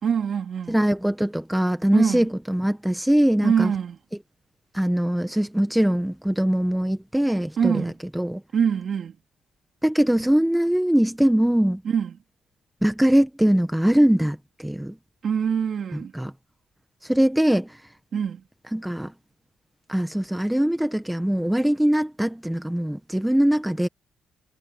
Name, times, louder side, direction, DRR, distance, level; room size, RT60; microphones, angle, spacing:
voice 1, 0.0-0.8 1.9-2.3 3.4-4.0 7.6-7.9 8.5-9.1 11.8-12.2 15.2-16.1 18.1-18.4, right 7 dB, 55° right, 3.6 m, -24 dB
voice 2, 0.7-3.7 4.7-8.4 9.8-11.8 12.8-15.0 16.1-16.3 17.0-17.8 18.7-19.1 19.9-23.9, right 1 dB, 5° right, 1.4 m, -22 dB
cardioid pair, 90°, 0 cm